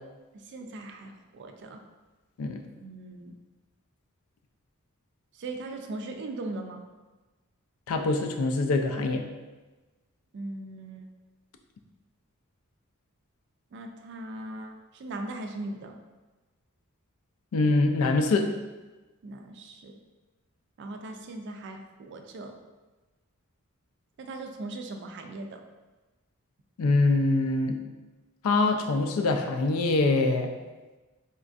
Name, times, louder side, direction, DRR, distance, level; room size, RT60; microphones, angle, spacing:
voice 1, 0.3-1.8 2.8-3.3 5.3-6.8 10.3-11.1 13.7-15.9 19.2-19.9 20.8-22.6 24.2-25.6, right 2 dB, 55° right, 5 dB, 0.3 m, -39 dB
voice 2, 7.9-9.2 17.5-18.5 26.8-27.8 28.4-30.5, left 3 dB, 75° left, 5 dB, 0.4 m, -24 dB
4.1 x 2.5 x 2.3 m, 1.2 s
head